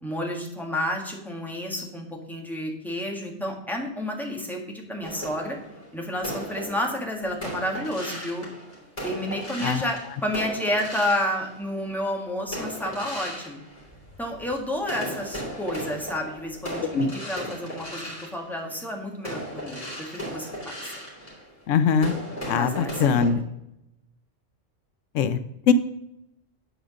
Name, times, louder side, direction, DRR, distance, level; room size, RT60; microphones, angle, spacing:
voice 1, 0.0-5.6 5.9-8.5 9.0-13.6 14.2-18.1 18.3-20.9 22.5-23.2, left 1 dB, ahead, 0 dB, 1.7 m, -30 dB
sound 1, 5.0-11.9 12.5-14.5 14.8-23.3, equal, 30° left, 3.2 m, -37 dB
voice 2, 21.7-22.1 22.5-23.4 25.1-25.4 25.7-25.8, left 6 dB, 80° left, 12 dB, 0.9 m, -21 dB
8.7 x 5.0 x 6.2 m, 0.81 s
omnidirectional pair, 1.3 m